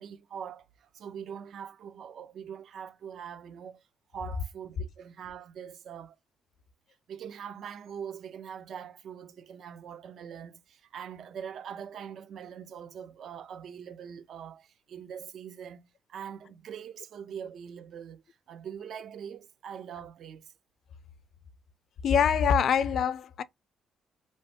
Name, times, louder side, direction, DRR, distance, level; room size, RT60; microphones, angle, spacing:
voice 1, 0.0-3.8 4.1-6.2 7.1-18.2 18.5-20.5, right 8 dB, 65° right, 0.3 m, -43 dB
voice 2, 22.0-23.4, left 7 dB, 65° left, 0.4 m, -24 dB
3.1 x 2.1 x 2.8 m
cardioid pair, 90°, 0 cm